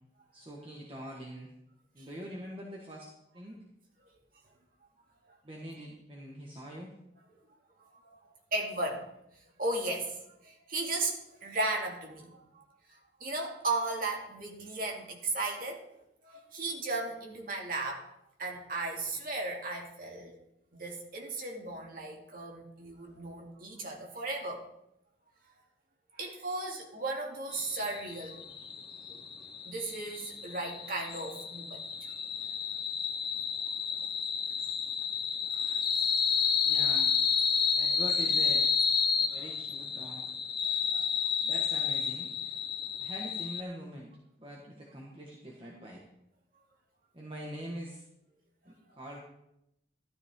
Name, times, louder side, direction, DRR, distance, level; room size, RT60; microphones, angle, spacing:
voice 1, 0.3-1.5 1.9-3.6 5.4-6.9 22.9-23.0 36.6-37.1 37.8-38.7 39.3-40.2 41.4-42.3 43.0-44.1 44.4-46.0 47.1-48.0 48.6-49.2, equal, 30° right, -2 dB, 1.6 m, -44 dB
voice 2, 8.5-9.0 9.6-10.2 10.4-12.6 12.9-15.8 16.2-18.1 18.4-20.4 20.7-24.6 26.2-28.4 29.1-29.2 29.7-32.1 35.5-35.8 39.3-39.5 40.0-40.1 40.7-41.1, right 2 dB, 45° right, 0 dB, 2.5 m, -36 dB
sound 1, 27.5-43.6, left 6 dB, 25° left, 0.8 m, -31 dB
13.5 x 13.0 x 3.8 m, 0.82 s
head